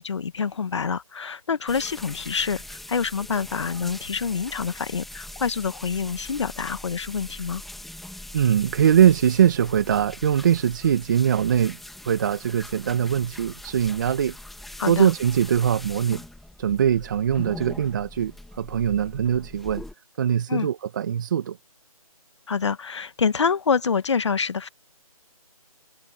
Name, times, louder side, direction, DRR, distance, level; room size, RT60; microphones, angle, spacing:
voice 1, 0.0-7.6 14.8-15.1 20.5-20.7 22.5-24.7, left 6 dB, 50° left, 1.5 m, -26 dB
sound 1, 1.7-19.9, left 1 dB, ahead, 2.0 m, -42 dB
voice 2, 8.3-11.8 12.0-14.3 14.9-16.2 16.6-18.3 18.6-19.8 20.2-21.6, right 9 dB, 30° right, 1.8 m, -22 dB
figure-of-eight pair, 165°, 19 cm